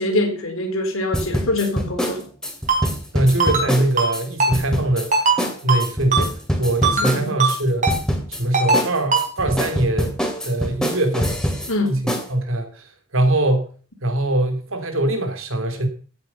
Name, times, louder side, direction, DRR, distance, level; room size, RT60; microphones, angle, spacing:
voice 1, 0.0-2.3 7.0-7.4 11.7-12.0, left 2 dB, 85° left, 4 dB, 3.8 m, -24 dB
sound 1, 1.1-4.2 4.5-5.1 5.4-5.5 5.8-7.6 7.9-8.4 8.7-11.7 12.1-12.3, equal, 5° left, 2.7 m, -24 dB
Ringtone, 2.7-2.8 3.4-3.7 4.0-4.1 4.4-4.5 5.1-5.4 5.7-5.8 6.1-6.2 6.8-7.1 7.4-7.5 7.8-8.0 8.5-8.8 9.1-9.2, right 4 dB, 40° right, 4.6 m, -18 dB
voice 2, 3.1-5.1 5.6-6.3 6.6-7.9 8.3-10.2 10.4-11.4 11.8-12.0 12.3-13.7 14.0-15.9, right 1 dB, 75° right, 6 dB, 3.4 m, -22 dB
16.0 x 8.8 x 5.6 m, 0.41 s
head